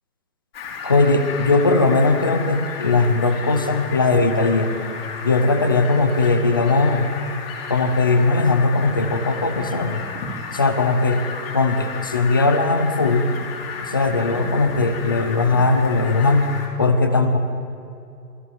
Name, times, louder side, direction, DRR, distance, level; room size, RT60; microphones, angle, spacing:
Fowl, 0.5-16.7, left 5 dB, 35° left, 4.8 m, -33 dB
voice 1, 0.8-4.7 5.2-7.1 7.7-10.0 10.5-11.2 11.5-13.3 13.9-16.5 16.8-17.4, left 3 dB, 15° left, 8 dB, 0.8 m, -19 dB
28.0 x 21.5 x 9.5 m, 2.6 s
hypercardioid pair, 175°, 49 cm